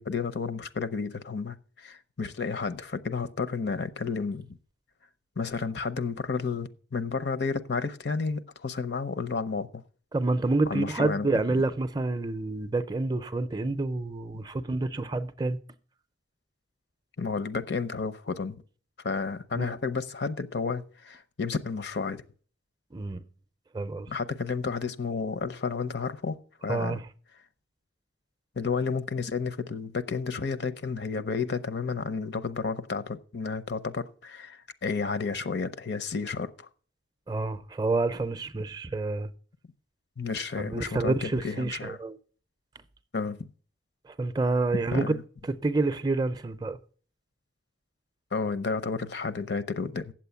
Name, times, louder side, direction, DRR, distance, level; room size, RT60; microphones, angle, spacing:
voice 1, 0.0-4.5 5.4-9.8 10.7-11.3 17.2-18.6 19.0-22.2 24.1-27.0 28.6-36.7 40.2-42.0 43.1-43.5 44.7-45.2 48.3-50.1, left 4 dB, 65° left, 0.6 m, -31 dB
voice 2, 10.1-15.6 19.5-19.8 22.9-23.2 23.7-24.1 26.7-27.1 37.3-39.3 40.6-42.2 44.1-45.2 45.4-46.8, right 3 dB, 20° right, 0.5 m, -28 dB
8.6 x 7.5 x 6.9 m
head